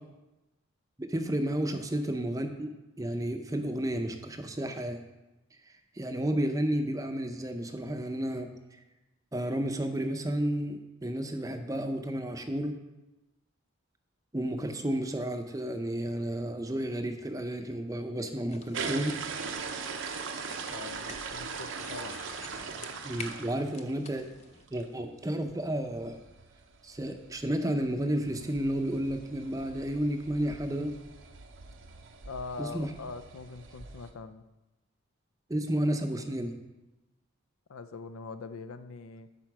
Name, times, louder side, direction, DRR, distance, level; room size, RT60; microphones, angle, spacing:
voice 1, 1.0-2.7 3.0-5.0 5.9-8.5 9.3-12.8 14.3-19.1 20.7-20.9 23.0-24.3 24.7-26.2 26.8-30.9 32.6-32.9 35.5-36.5, right 1 dB, 15° right, 5 dB, 0.5 m, -32 dB
sound 1, 18.5-24.7, left 5 dB, 30° left, 0.4 m, -49 dB
sound 2, 18.7-24.2 24.6-24.9 25.2-25.3 25.5-25.6 25.8-34.1, right 5 dB, 65° right, 0.6 m, -41 dB
voice 2, 20.6-22.2 23.5-23.7 32.2-34.4 37.7-39.3, left 4 dB, 85° left, 11 dB, 0.5 m, -43 dB
9.4 x 4.4 x 6.0 m, 1.1 s
head